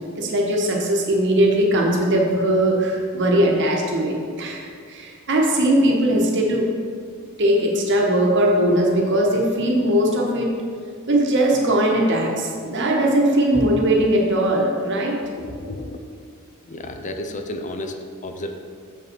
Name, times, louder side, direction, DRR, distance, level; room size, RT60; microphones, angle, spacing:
voice 1, 0.2-6.7 7.4-10.5 11.1-15.2, right 1 dB, 60° right, 0 dB, 1.1 m, -19 dB
voice 2, 15.4-16.0 16.6-17.9 18.2-18.5, left 1 dB, 35° left, 6 dB, 0.5 m, -32 dB
7.1 x 5.4 x 4.4 m, 2.1 s
head